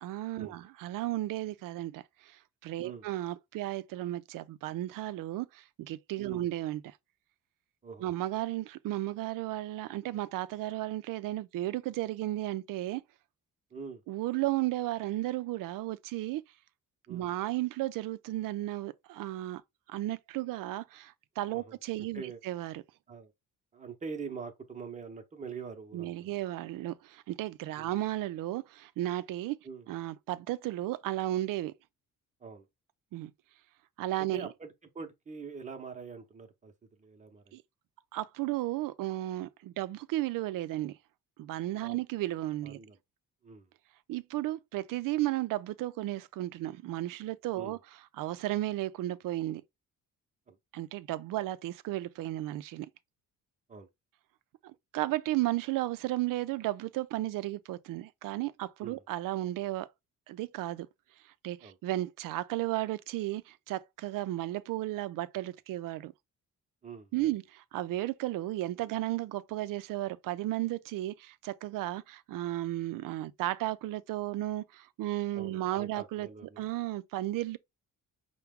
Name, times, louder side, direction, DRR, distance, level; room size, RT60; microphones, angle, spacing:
voice 1, 0.0-6.9 8.0-13.0 14.1-16.4 17.1-19.6 19.9-22.8 25.9-29.6 29.9-31.7 33.1-33.3 34.0-34.5 37.5-37.6 38.1-41.0 41.4-42.8 44.1-47.8 48.2-49.6 50.7-52.9 54.6-59.9 60.3-60.9 61.4-66.1 67.1-76.3 76.6-77.6, right 15 dB, 75° right, 0.5 m, -34 dB
voice 2, 13.7-14.0 17.1-17.3 21.5-21.7 22.1-22.4 23.1-23.3 23.7-26.3 27.8-27.9 29.6-29.9 32.4-32.6 34.3-34.7 34.9-36.7 37.0-37.6 41.8-42.0 42.6-43.0 43.4-43.7 47.5-47.8 50.5-50.6 53.7-53.9 58.8-59.0 61.6-61.8 66.8-67.3 75.3-76.6, right 5 dB, 20° right, 0.8 m, -44 dB
5.7 x 2.2 x 3.5 m
cardioid pair, 150°, 33 cm